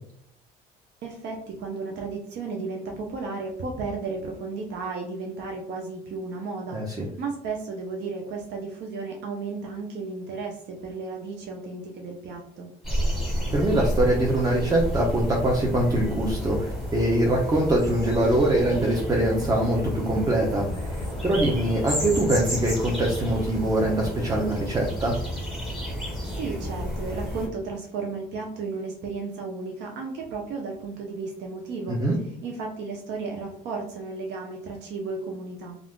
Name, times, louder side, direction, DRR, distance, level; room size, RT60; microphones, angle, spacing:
voice 1, 1.0-12.7 26.2-32.0 32.4-35.8, right 4 dB, 65° right, 1 dB, 0.6 m, -34 dB
voice 2, 6.7-7.1 13.5-25.1 31.9-32.2, right 1 dB, 20° right, -1 dB, 0.6 m, -23 dB
sound 1, 12.8-27.5, equal, ahead, 1.3 m, -31 dB
2.4 x 2.4 x 3.5 m, 0.68 s
supercardioid pair, 85°, 19 cm